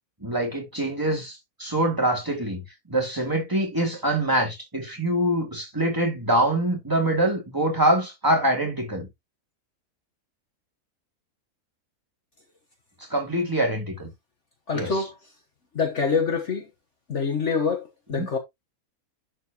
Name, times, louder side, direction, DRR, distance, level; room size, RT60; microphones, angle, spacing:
voice 1, 0.2-2.6 2.9-9.1 13.1-14.1 14.7-14.9 18.1-18.3, right 1 dB, 15° right, 2.9 m, -24 dB
voice 2, 14.7-15.3 15.7-16.7 17.1-18.4, left 5 dB, 50° left, 1.4 m, -26 dB
11.0 x 4.7 x 2.9 m
omnidirectional pair, 1.6 m